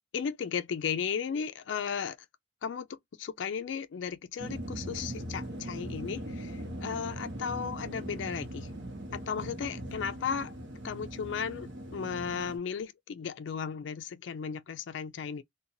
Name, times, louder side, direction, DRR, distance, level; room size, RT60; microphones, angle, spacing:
voice 1, 0.1-2.2 2.6-8.7 9.1-10.5 10.8-15.4, left 7 dB, 75° left, 0.4 m, -35 dB
sound 1, 4.4-12.6, right 1 dB, 70° right, 0.8 m, -40 dB
2.5 x 2.2 x 2.7 m
head